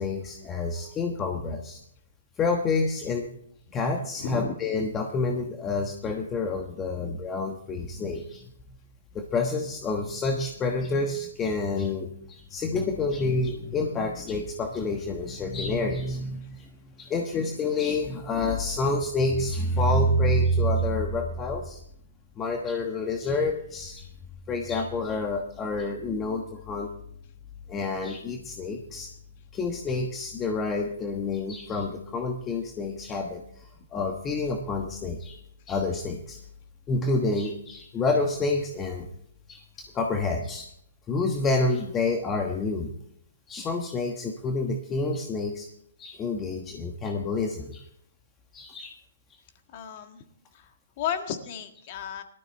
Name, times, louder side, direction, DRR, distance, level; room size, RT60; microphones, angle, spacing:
voice 1, 0.0-1.8 2.4-3.3 3.7-8.5 9.1-21.8 22.4-24.1 24.5-26.9 27.7-29.1 29.5-35.4 35.7-36.4 36.9-39.1 39.5-40.7 41.1-42.9 43.5-45.7 46.0-47.8 48.5-48.9, left 2 dB, 15° left, 3 dB, 1.2 m, -28 dB
voice 2, 4.2-4.5 7.0-7.1 49.7-50.2 50.5-50.7 51.0-52.2, left 8 dB, 40° left, 7 dB, 1.7 m, -33 dB
18.5 x 13.0 x 3.5 m, 0.71 s
hypercardioid pair, 140°, 0 cm